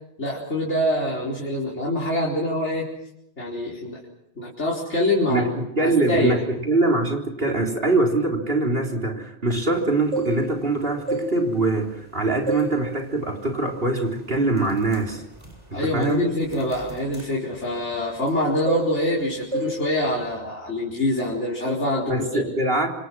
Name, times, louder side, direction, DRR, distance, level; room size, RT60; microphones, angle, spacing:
voice 1, 0.2-2.9 3.4-4.0 4.4-5.5 5.8-6.4 15.7-22.4, left 1 dB, 85° left, -3 dB, 4.8 m, -25 dB
voice 2, 5.3-15.2 15.7-16.3 22.1-22.9, right 2 dB, 55° right, 1 dB, 4.2 m, -23 dB
sound 1, 9.9-10.7 11.0-12.1 12.5-12.8 13.2-13.4 14.0-14.2 14.5-18.4 18.7-19.2 19.5-19.8 20.1-20.3, right 1 dB, 25° right, 7.4 m, -31 dB
27.0 x 26.5 x 6.2 m, 0.82 s
omnidirectional pair, 1.2 m